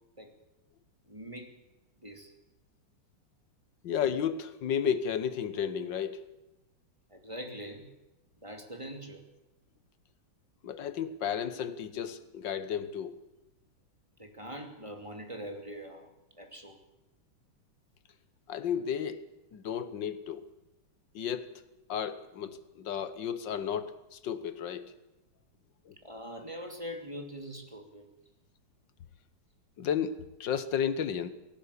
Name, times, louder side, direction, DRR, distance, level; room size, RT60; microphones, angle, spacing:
voice 1, 1.1-1.5 2.0-2.3 7.1-7.8 8.4-9.2 14.2-16.1 16.4-16.8 26.0-28.1, equal, 15° right, 5 dB, 2.7 m, -42 dB
voice 2, 3.8-6.3 10.6-13.1 18.5-19.3 19.5-20.5 21.2-21.5 21.9-24.9 25.9-26.0 29.8-31.3, left 8 dB, 60° left, 13 dB, 1.9 m, -33 dB
19.0 x 17.0 x 8.4 m, 1.0 s
omnidirectional pair, 2.4 m